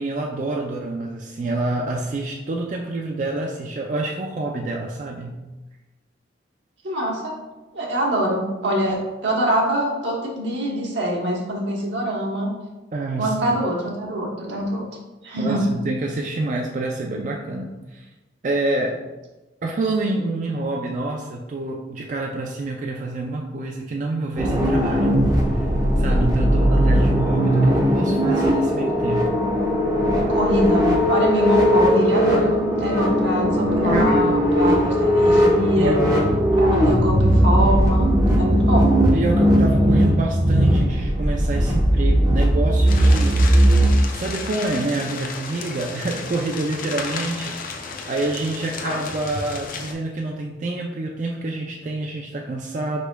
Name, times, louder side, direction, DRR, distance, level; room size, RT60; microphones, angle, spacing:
voice 1, 0.0-5.4 12.9-13.3 15.4-18.1 18.4-19.0 19.6-25.2 25.5-25.7 26.0-29.3 32.2-32.3 33.8-34.5 35.8-36.4 39.1-47.6 48.1-53.0, right 2 dB, 40° right, 0 dB, 0.4 m, -27 dB
voice 2, 6.8-7.3 7.7-12.5 13.2-14.8 15.2-15.6 30.3-36.0 36.5-38.9, equal, 85° right, -1 dB, 1.0 m, -24 dB
sound 1, 24.4-43.9, equal, 20° right, 0.8 m, -18 dB
sound 2, 42.9-49.9, left 4 dB, 50° left, 0.5 m, -33 dB
5.1 x 4.6 x 2.2 m, 1.1 s
head